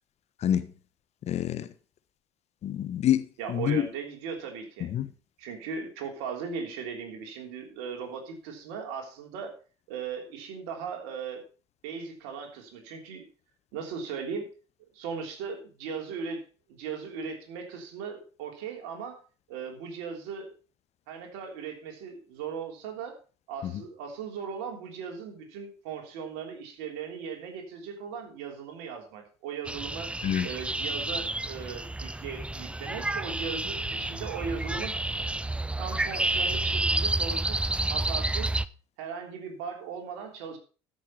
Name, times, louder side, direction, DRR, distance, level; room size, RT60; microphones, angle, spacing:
voice 1, 1.3-1.7 2.6-3.8 4.8-5.1 23.6-23.7 30.2-30.5, left 10 dB, 50° left, 1.1 m, -27 dB
voice 2, 3.4-4.9 5.4-9.5 9.9-11.4 11.8-13.2 13.7-14.5 14.9-16.4 16.7-19.2 19.5-20.5 21.1-23.1 23.5-30.1 30.4-35.0 35.8-37.6 37.9-38.5 39.0-40.6, right 6 dB, 70° right, 3.4 m, -38 dB
sound 1, 29.6-38.7, right 2 dB, 10° right, 0.6 m, -30 dB
13.5 x 6.6 x 5.7 m
hypercardioid pair, 60°, 14 cm